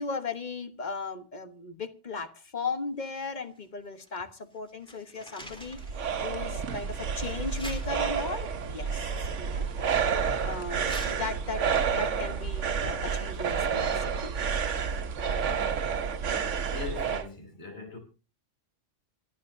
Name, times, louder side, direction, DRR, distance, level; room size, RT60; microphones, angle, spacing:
voice 1, 0.0-5.8 6.2-9.7 10.4-11.6 11.9-14.4, left 4 dB, 40° left, 1.3 m, -37 dB
sound 1, 3.0-4.2 4.5-6.1 6.6-6.7 7.4-8.5 9.3-10.3 10.7-15.1 15.4-15.5, equal, 5° left, 3.4 m, -47 dB
sound 2, 5.4-17.3, right 6 dB, 80° right, 1.3 m, -30 dB
voice 2, 16.7-18.0, left 5 dB, 65° left, 3.5 m, -40 dB
27.0 x 10.5 x 2.7 m
omnidirectional pair, 1.2 m